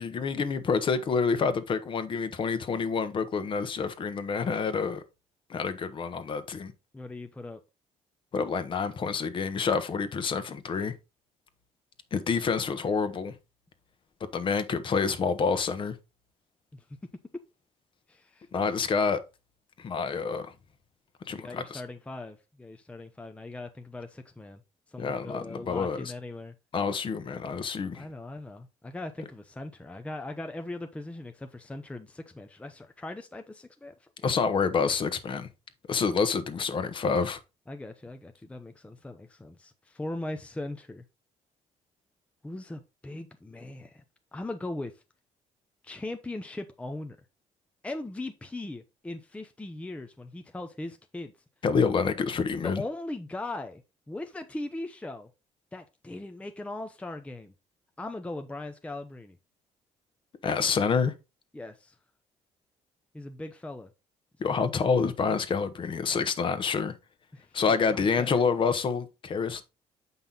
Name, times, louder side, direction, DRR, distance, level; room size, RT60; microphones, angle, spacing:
voice 1, 0.0-5.0 5.5-6.7 8.3-10.9 12.1-13.3 14.3-15.9 18.5-19.2 19.8-20.5 21.3-21.8 25.0-26.1 26.7-28.1 34.2-35.5 35.9-37.4 51.6-52.8 60.4-61.1 64.4-66.9 67.5-69.6, left 5 dB, 40° left, 1.1 m, -28 dB
voice 2, 6.9-7.6 16.7-16.8 18.1-18.5 21.4-24.6 24.9-26.5 27.9-34.3 37.7-41.0 42.4-44.0 44.3-45.0 45.8-47.2 47.8-51.3 52.6-53.8 54.1-55.3 55.7-57.5 58.0-59.4 61.5-62.0 63.1-63.9 67.3-67.5 67.9-68.4, left 2 dB, 10° left, 0.7 m, -39 dB
7.5 x 5.5 x 4.0 m
cardioid pair, 120°, 13 cm